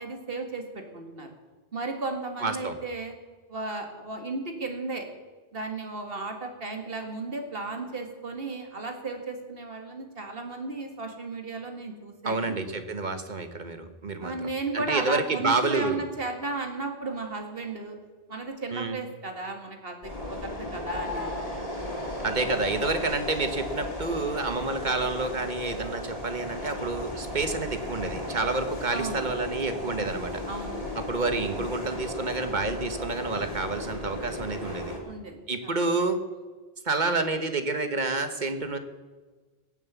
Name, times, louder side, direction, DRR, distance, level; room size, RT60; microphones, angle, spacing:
voice 1, 0.0-1.3 1.7-3.1 3.5-5.1 5.5-12.5 14.2-18.0 18.3-21.4 28.9-29.2 30.5-30.8 35.1-35.4, right 3 dB, 70° right, 4 dB, 2.2 m, -34 dB
voice 2, 2.4-2.8 12.2-16.0 18.7-19.0 22.2-30.4 31.1-34.9 35.5-36.2 36.8-38.8, right 3 dB, 50° right, 9 dB, 1.4 m, -29 dB
sound 1, 20.0-35.0, left 1 dB, 35° left, 3.1 m, -35 dB
18.0 x 7.4 x 8.3 m, 1.3 s
omnidirectional pair, 1.0 m